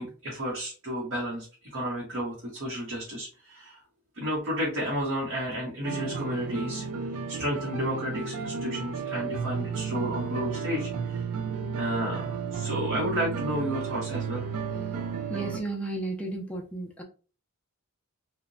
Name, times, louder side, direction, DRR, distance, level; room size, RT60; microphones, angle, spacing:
voice 1, 0.0-1.5 1.7-3.8 4.2-6.9 7.3-11.2 11.8-14.5, equal, 60° right, -4 dB, 0.8 m, -32 dB
sound 1, 5.8-15.6, right 6 dB, 85° right, 0.4 m, -33 dB
voice 2, 15.3-17.0, right 2 dB, 5° left, 0 dB, 0.3 m, -34 dB
2.8 x 2.1 x 2.5 m, 0.36 s
head